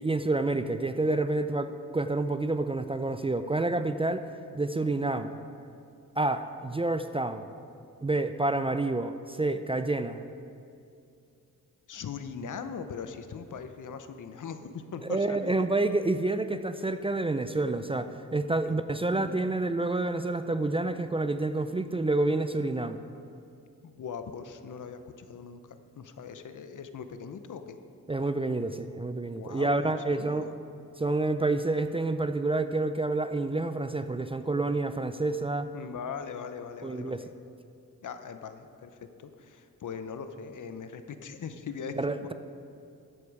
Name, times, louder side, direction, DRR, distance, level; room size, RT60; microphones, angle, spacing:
voice 1, 0.0-4.3 4.5-5.3 6.2-7.5 8.0-10.2 15.1-23.0 28.1-30.5 31.0-35.7 36.8-37.2 42.0-42.3, right 2 dB, 15° right, 10 dB, 0.4 m, -28 dB
voice 2, 11.9-15.7 18.6-19.5 23.8-27.8 29.3-30.5 35.7-37.3 38.0-41.9, left 6 dB, 65° left, 9 dB, 0.8 m, -40 dB
13.5 x 8.3 x 4.8 m, 2.6 s
cardioid pair, 80°, 33 cm